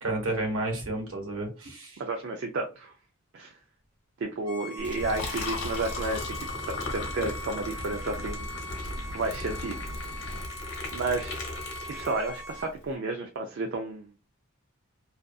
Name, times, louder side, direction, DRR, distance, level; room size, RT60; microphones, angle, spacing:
voice 1, 0.0-2.0, right 2 dB, 75° right, 1.1 m, -31 dB
voice 2, 2.0-2.9 3.3-3.5 4.2-6.4 6.7-8.5 9.1-9.8 10.9-11.4 11.9-14.1, right 3 dB, 55° right, 0.4 m, -32 dB
Bowed string instrument, 4.4-12.7, equal, 20° left, 0.8 m, -41 dB
Liquid, 4.8-12.5, left 3 dB, 55° left, 1.0 m, -37 dB
sound 1, 5.0-10.4, left 1 dB, 85° left, 0.7 m, -41 dB
2.5 x 2.5 x 2.3 m
head